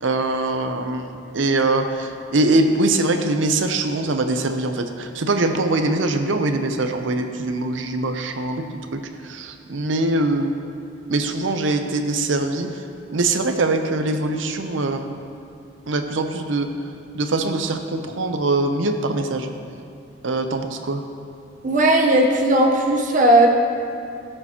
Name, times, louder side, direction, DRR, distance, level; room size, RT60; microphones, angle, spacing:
voice 1, 0.0-8.6 8.9-10.5 11.1-12.8 13.1-15.1 15.9-16.7 17.1-19.5 20.2-21.0, right 2 dB, 80° right, 7 dB, 0.7 m, -22 dB
voice 2, 21.6-23.5, right 1 dB, 45° right, 0 dB, 0.9 m, -16 dB
15.0 x 6.7 x 2.9 m, 2.5 s
head